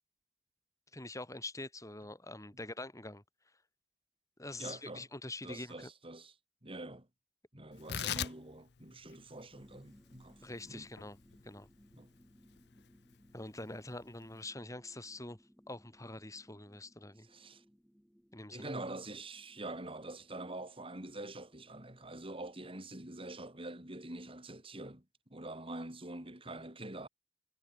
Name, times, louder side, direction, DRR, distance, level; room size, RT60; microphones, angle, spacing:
voice 1, 0.9-3.2 4.4-5.7 8.0-8.2 10.4-11.2 11.4-11.7 13.3-15.4 15.7-17.3 18.3-18.7, left 2 dB, 20° left, 4.0 m, -45 dB
voice 2, 4.6-5.1 5.4-6.3 6.6-7.1 7.5-10.9 11.9-12.1 17.2-17.6 18.5-25.0 25.3-27.1, right 2 dB, 30° right, 4.2 m, -45 dB
Tearing, 7.7-14.4, left 9 dB, 65° left, 0.7 m, -44 dB
sound 1, 9.5-23.3, equal, ahead, 7.9 m, -65 dB
head